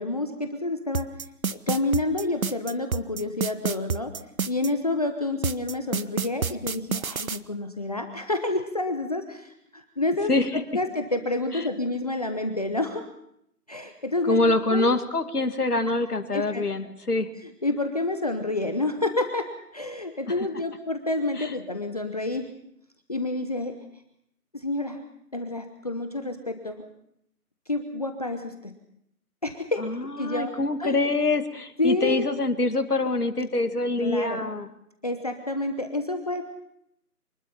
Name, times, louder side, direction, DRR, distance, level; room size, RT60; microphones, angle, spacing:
voice 1, 0.0-4.1 4.5-13.0 13.7-14.4 14.7-14.9 16.3-16.6 17.4-22.5 23.1-23.8 24.5-25.0 25.3-26.8 27.7-28.7 29.4-29.9 30.2-30.5 30.8-31.0 31.8-32.3 34.0-34.5 35.0-36.4, left 2 dB, 25° left, 6 dB, 0.8 m, -29 dB
sound 1, 0.9-4.7 5.4-7.4, right 6 dB, 60° right, 0.9 m, -28 dB
voice 2, 14.3-17.3 21.4-21.5 29.8-34.7, left 2 dB, 75° left, 8 dB, 2.2 m, -25 dB
24.5 x 20.5 x 5.7 m, 0.74 s
figure-of-eight pair, 155°, 46 cm